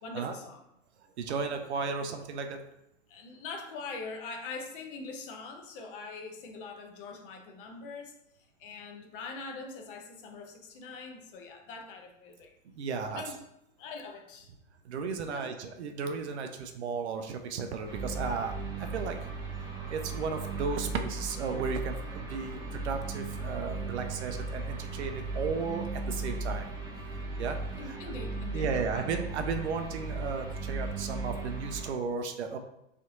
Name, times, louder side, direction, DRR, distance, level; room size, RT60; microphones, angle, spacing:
voice 1, 0.0-0.6 3.1-8.1 8.6-12.5 13.1-13.3 13.8-14.5 15.3-15.5 27.8-29.1, left 4 dB, 45° left, 3 dB, 0.8 m, -43 dB
voice 2, 1.2-2.6 12.7-13.2 14.8-19.2 19.9-26.7 27.4-27.6 27.9-28.0 28.5-32.6, right 5 dB, 65° right, 5 dB, 0.6 m, -34 dB
sound 1, 17.9-31.9, right 3 dB, 10° right, 0.7 m, -37 dB
3.3 x 2.7 x 3.8 m, 0.83 s
figure-of-eight pair, 95°, 37 cm